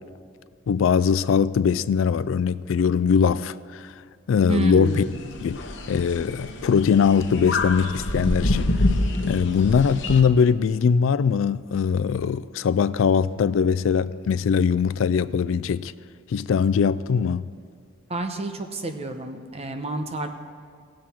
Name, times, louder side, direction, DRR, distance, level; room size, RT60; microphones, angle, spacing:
voice 1, 0.7-3.9 4.3-5.1 5.4-5.6 5.9-8.7 9.3-15.9 16.3-17.4, left 6 dB, 90° left, 0.3 m, -21 dB
voice 2, 4.5-5.3 18.1-20.3, right 2 dB, 35° right, 0.8 m, -29 dB
sound 1, 4.9-10.2, left 2 dB, 65° left, 1.0 m, -27 dB
18.5 x 7.6 x 4.3 m
head